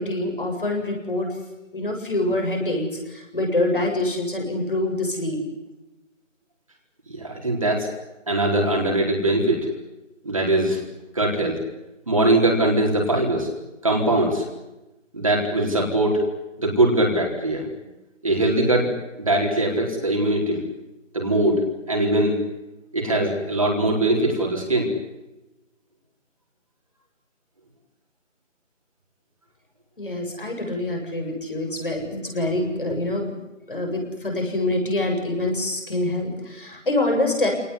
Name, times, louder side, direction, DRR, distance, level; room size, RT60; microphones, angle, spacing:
voice 1, 0.0-1.4 1.7-5.4 30.0-33.3 33.7-37.5, left 1 dB, 45° left, 2 dB, 7.9 m, -25 dB
voice 2, 7.1-7.9 8.3-9.7 10.2-10.8 11.1-11.6 12.1-13.5 13.8-14.4 15.1-16.2 16.6-17.7 18.2-20.6 21.1-22.4 22.9-24.9, right 1 dB, 25° right, -1 dB, 4.4 m, -21 dB
28.0 x 19.5 x 9.9 m, 0.99 s
figure-of-eight pair, 175°, 38 cm